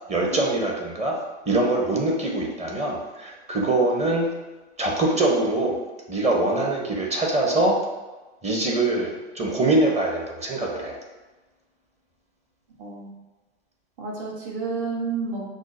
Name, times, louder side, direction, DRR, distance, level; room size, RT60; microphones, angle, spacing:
voice 1, 0.1-1.2 1.5-4.3 4.8-5.8 6.1-7.8 8.4-11.0, right 2 dB, 20° right, -1 dB, 0.9 m, -23 dB
voice 2, 12.8-13.1 14.0-15.5, right 4 dB, 50° right, -2 dB, 1.3 m, -30 dB
5.9 x 2.2 x 2.6 m, 1.2 s
hypercardioid pair, 95°, 33 cm